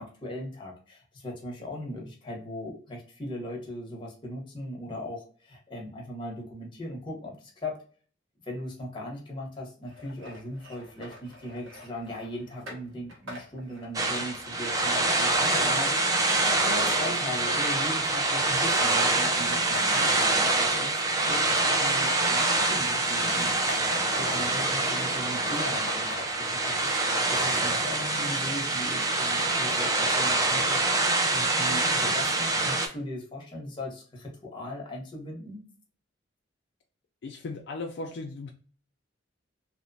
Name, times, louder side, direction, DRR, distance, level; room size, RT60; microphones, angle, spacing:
voice 1, 0.0-7.8 8.4-23.8 24.2-30.8 31.3-35.6, left 1 dB, 25° left, -2 dB, 0.8 m, -39 dB
sound 1, 9.9-18.3 18.5-18.7 19.0-20.7 21.1-24.8 25.2-25.3 25.4-26.9, left 1 dB, 80° right, 0.9 m, -43 dB
sound 2, 13.9-32.9, right 2 dB, 20° right, 0.3 m, -25 dB
voice 2, 37.2-38.5, left 3 dB, 60° left, 2 dB, 0.3 m, -37 dB
2.9 x 2.0 x 2.6 m, 0.42 s
head